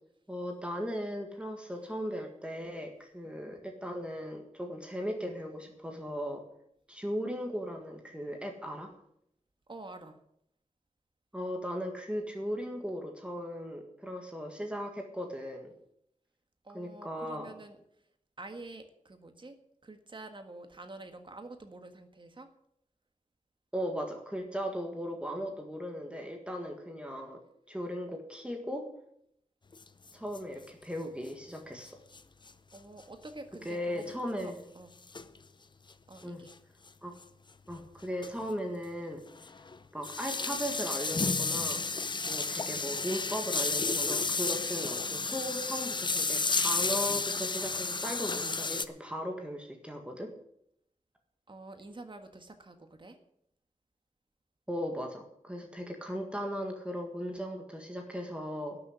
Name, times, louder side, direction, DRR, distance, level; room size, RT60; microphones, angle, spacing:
voice 1, 0.3-6.4 6.9-8.9 11.3-15.7 16.7-17.5 23.7-27.4 27.7-28.8 30.1-32.0 33.7-34.6 36.2-36.4 37.0-37.2 37.7-39.2 39.9-41.8 42.3-50.3 54.7-58.8, equal, 10° right, 2 dB, 1.7 m, -37 dB
voice 2, 9.7-10.2 16.6-17.8 18.4-19.6 19.8-22.5 32.7-34.1 34.4-34.9 36.1-36.5 51.5-53.2, right 2 dB, 35° right, 7 dB, 1.6 m, -47 dB
sound 1, 29.7-29.8 30.1-30.2 30.3-30.4 32.1-32.2 32.5-32.6 33.6-33.7 35.1-35.4 36.5-36.6 37.2-37.3 37.7-37.8 38.2-38.4 38.7-38.8 39.4-48.8, left 4 dB, 35° left, 0.7 m, -32 dB
12.0 x 6.9 x 9.5 m, 0.73 s
wide cardioid pair, 120°, 14 cm